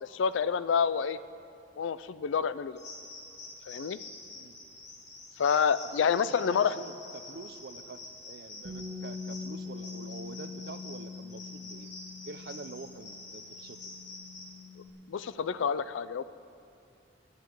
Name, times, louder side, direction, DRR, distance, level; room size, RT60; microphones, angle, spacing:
voice 1, 0.0-1.2 1.8-2.8 3.7-4.0 5.4-6.8 15.1-16.2, left 6 dB, 85° left, 15 dB, 0.4 m, -28 dB
sound 1, 2.8-14.5, left 2 dB, 70° left, 2.4 m, -47 dB
voice 2, 6.0-11.9 12.2-13.9, right 3 dB, 55° right, 11 dB, 0.5 m, -46 dB
Bass guitar, 8.6-14.9, left 4 dB, 75° right, 1.4 m, -43 dB
11.0 x 9.2 x 7.6 m, 2.5 s
head